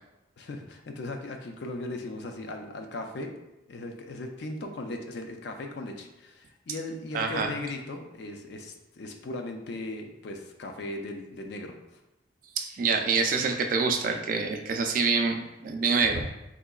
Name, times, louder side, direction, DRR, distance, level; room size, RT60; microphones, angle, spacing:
voice 1, 0.4-3.4 3.7-11.8, left 2 dB, 55° left, 4 dB, 0.4 m, -38 dB
voice 2, 7.1-7.5 12.6-16.3, right 4 dB, 45° right, 4 dB, 0.3 m, -26 dB
3.6 x 2.9 x 2.3 m, 0.95 s
head